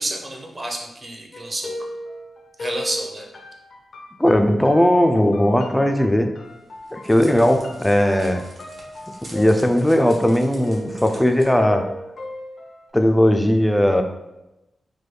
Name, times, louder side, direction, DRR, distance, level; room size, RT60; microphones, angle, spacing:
voice 1, 0.0-1.8 2.6-3.3, right 1 dB, 30° right, 1 dB, 0.6 m, -29 dB
sound 1, 1.3-12.9, left 1 dB, 65° left, 0.5 m, -37 dB
voice 2, 4.2-6.3 6.9-8.4 9.3-11.8 12.9-14.0, left 1 dB, 10° left, 6 dB, 0.3 m, -17 dB
Crackle, 6.5-11.4, right 1 dB, 65° right, 0.8 m, -45 dB
3.3 x 2.2 x 3.2 m, 0.96 s
cardioid pair, 80°, 0 cm